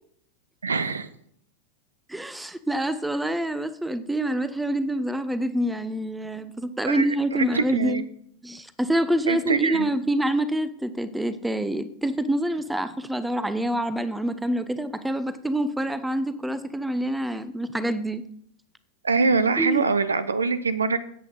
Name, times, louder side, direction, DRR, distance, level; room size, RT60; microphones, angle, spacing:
voice 1, 0.6-1.1 6.9-7.1 7.3-8.1 9.3-9.9 19.0-21.0, right 4 dB, 75° right, 14 dB, 0.7 m, -24 dB
voice 2, 2.1-8.0 8.4-18.2 19.6-19.9, right 1 dB, 5° right, 14 dB, 0.7 m, -26 dB
14.0 x 8.4 x 4.0 m, 0.68 s
figure-of-eight pair, 90°, 0 cm